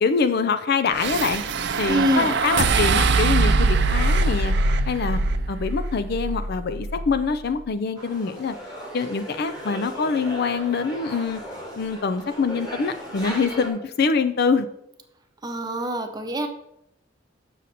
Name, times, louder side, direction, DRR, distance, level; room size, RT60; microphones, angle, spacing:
voice 1, 0.0-1.4 1.8-4.5 4.9-5.2 5.5-8.5 8.9-11.4 11.7-14.7, left 5 dB, 55° left, 11 dB, 0.5 m, -24 dB
sound 1, 1.0-7.3, right 3 dB, 60° right, 0.6 m, -22 dB
voice 2, 1.9-2.3 15.4-16.5, equal, 20° right, 5 dB, 0.7 m, -25 dB
sound 2, 8.0-13.7, equal, 20° left, 1.8 m, -36 dB
6.7 x 6.5 x 4.2 m, 0.79 s
head